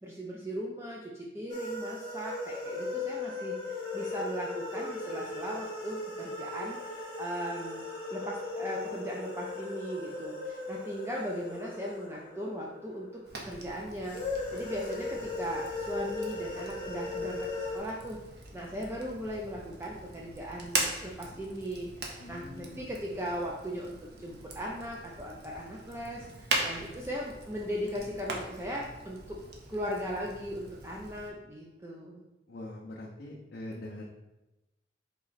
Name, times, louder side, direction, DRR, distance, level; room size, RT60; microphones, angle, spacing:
voice 1, 0.0-7.8 8.1-18.2 18.5-29.4 29.7-32.2, equal, 15° right, -3 dB, 0.4 m, -38 dB
sound 1, 1.5-13.3 14.0-17.8, left 3 dB, 25° left, 1.0 m, -38 dB
Fire, 13.2-31.3, right 3 dB, 60° right, 0.7 m, -40 dB
voice 2, 22.2-22.8 32.5-34.1, left 1 dB, 60° left, -2 dB, 0.5 m, -43 dB
4.1 x 2.9 x 4.0 m, 1.0 s
head